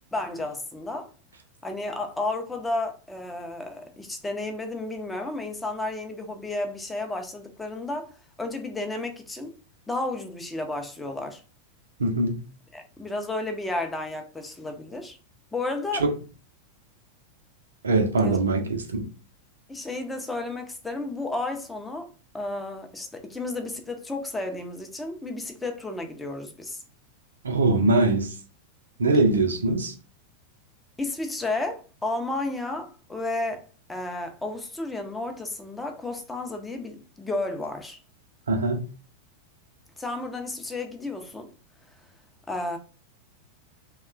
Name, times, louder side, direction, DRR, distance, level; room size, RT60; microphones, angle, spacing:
voice 1, 0.1-1.1 1.6-9.5 9.9-11.4 12.7-15.2 15.5-16.0 18.2-18.4 19.7-22.1 22.3-26.8 31.0-33.6 33.9-38.0 40.0-41.5 42.5-42.8, left 2 dB, 10° left, 0.5 m, -32 dB
voice 2, 12.0-12.4 16.0-16.1 17.8-19.1 27.4-28.3 29.0-29.9 38.5-38.8, right 2 dB, 70° right, 0.5 m, -22 dB
2.9 x 2.1 x 2.3 m
figure-of-eight pair, 90°, 0 cm